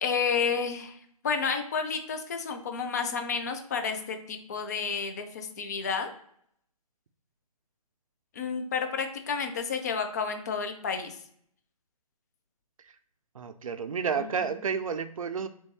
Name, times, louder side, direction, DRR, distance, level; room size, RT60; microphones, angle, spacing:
voice 1, 0.0-1.0 1.2-6.1 8.3-11.2 14.2-14.7, left 5 dB, 30° left, 6 dB, 0.4 m, -31 dB
voice 2, 13.4-15.5, right 6 dB, 65° right, 11 dB, 0.4 m, -31 dB
3.4 x 2.6 x 3.2 m, 0.67 s
figure-of-eight pair, 140°, 19 cm